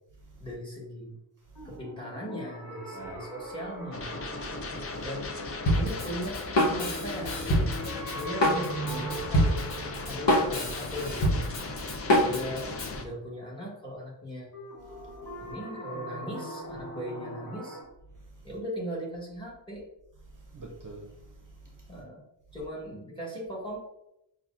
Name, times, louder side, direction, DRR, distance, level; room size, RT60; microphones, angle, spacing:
voice 1, 0.4-1.2 1.6-4.1 5.0-5.4 5.7-7.7 8.1-9.6 10.0-11.3 12.2-12.7 13.0-14.5 15.4-17.8 18.4-19.9 21.9-22.2 22.5-23.8, equal, 10° left, 1.3 m, -38 dB
sound 1, 1.6-12.4 14.5-17.8, right 1 dB, 50° left, 1.5 m, -41 dB
voice 2, 2.9-3.3 4.6-5.0 8.8-9.1 11.7-12.3 14.9-15.5 18.1-18.4 20.3-22.0, right 2 dB, 45° right, 0.6 m, -47 dB
sound 2, 3.9-13.0, left 3 dB, 35° left, 0.4 m, -38 dB
Drum kit, 5.7-13.0, equal, 65° left, 1.0 m, -26 dB
5.7 x 2.2 x 2.5 m
wide cardioid pair, 170°, 46 cm